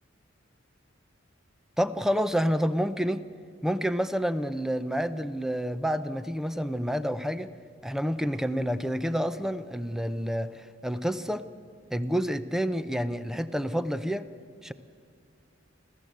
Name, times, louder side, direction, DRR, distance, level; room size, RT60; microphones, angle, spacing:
voice 1, 1.8-3.2 3.6-7.5 7.8-11.4 11.9-14.3 14.6-14.7, equal, ahead, 12 dB, 0.7 m, -28 dB
26.0 x 15.5 x 8.0 m, 2.5 s
head